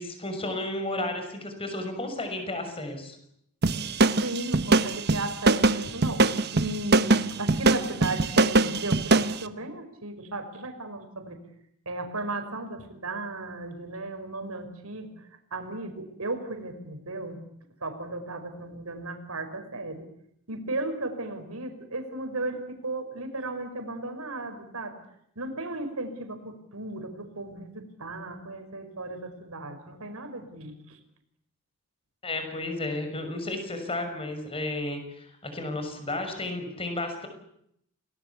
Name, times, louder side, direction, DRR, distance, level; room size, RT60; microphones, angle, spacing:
voice 1, 0.0-3.2 32.2-37.3, left 2 dB, 25° left, 6 dB, 6.0 m, -33 dB
sound 1, 3.6-9.4, right 3 dB, 50° right, 1.1 m, -22 dB
voice 2, 4.2-6.3 6.5-11.4 11.9-17.4 17.8-20.1 20.5-25.0 25.4-31.0, right 2 dB, 75° right, 6 dB, 5.4 m, -35 dB
29.0 x 19.5 x 8.5 m, 0.75 s
head